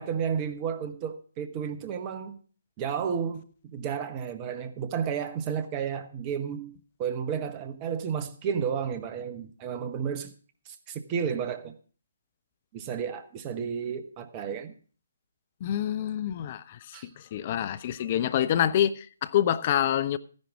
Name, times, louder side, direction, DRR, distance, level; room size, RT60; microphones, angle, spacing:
voice 1, 0.0-2.4 2.8-6.7 7.0-10.3 10.7-11.7 12.7-14.7 16.9-17.1, right 7 dB, 25° right, 1.0 m, -32 dB
voice 2, 15.6-20.2, left 10 dB, 35° left, 0.6 m, -27 dB
14.0 x 10.5 x 3.6 m
figure-of-eight pair, 140°, 0 cm